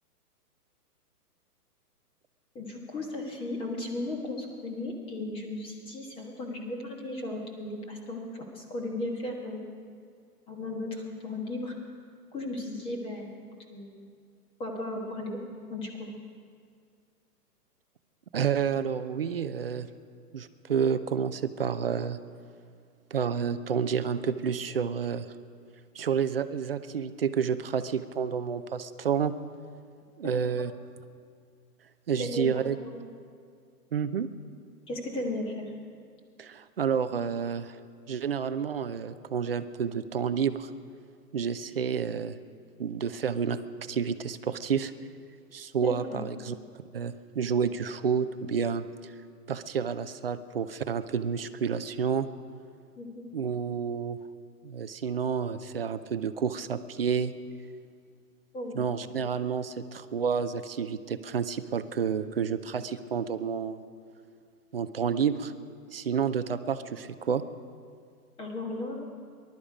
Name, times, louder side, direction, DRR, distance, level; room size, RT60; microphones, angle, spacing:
voice 1, 2.5-9.7 10.5-11.7 12.3-13.3 13.7-14.1 14.6-15.4 15.7-15.9 30.2-30.3 32.2-32.5 32.8-33.0 34.9-35.7 45.8-46.3 53.0-53.3 58.5-58.9 68.4-69.1, left 2 dB, 10° left, 1 dB, 1.4 m, -35 dB
voice 2, 18.3-19.9 20.3-22.2 23.1-25.3 26.0-29.3 30.2-30.7 32.1-32.8 33.9-34.3 36.4-37.8 38.1-40.7 41.3-42.3 42.8-43.6 43.9-44.9 45.5-46.6 46.9-49.1 49.5-52.3 53.3-54.2 54.6-57.3 58.7-63.8 64.7-65.5 65.9-67.4, right 7 dB, 40° right, 12 dB, 0.4 m, -29 dB
20.0 x 12.0 x 4.9 m, 2.2 s
hypercardioid pair, 155°, 48 cm